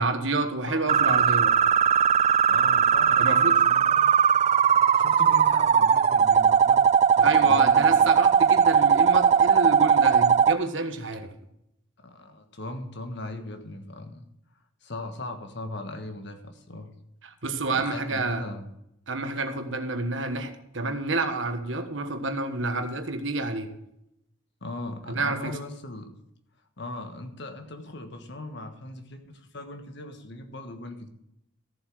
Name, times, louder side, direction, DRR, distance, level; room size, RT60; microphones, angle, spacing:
voice 1, 0.0-1.5 3.2-3.5 7.2-11.3 17.2-18.5 19.1-23.8 25.1-25.5, right 2 dB, 65° right, 7 dB, 1.3 m, -29 dB
voice 2, 0.7-1.3 2.5-4.0 4.9-8.1 12.0-14.3 14.8-16.9 17.7-18.7 24.6-26.1 26.8-31.1, left 2 dB, 60° left, 7 dB, 1.4 m, -39 dB
sound 1, 0.9-10.5, right 7 dB, 35° right, 0.3 m, -19 dB
14.0 x 7.5 x 4.8 m, 0.80 s
head